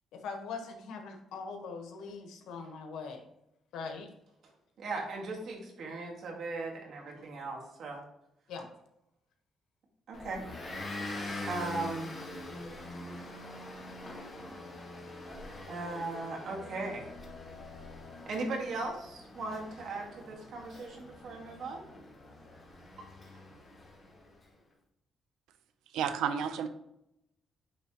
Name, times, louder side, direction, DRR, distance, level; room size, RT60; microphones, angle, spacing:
voice 1, 0.1-3.2 3.7-4.1 8.5-8.7, left 4 dB, 80° left, 4 dB, 1.2 m, -41 dB
voice 2, 4.8-8.0 10.1-10.4 11.5-12.1 15.7-17.1 18.3-21.8 23.0-23.1, right 3 dB, 65° right, 0 dB, 1.9 m, -38 dB
Motor vehicle (road) / Engine, 10.1-24.4, left 2 dB, 30° left, 2.0 m, -44 dB
voice 3, 25.9-26.7, right 8 dB, 90° right, 10 dB, 0.6 m, -31 dB
9.5 x 3.4 x 3.0 m, 0.82 s
cardioid pair, 90°, 0 cm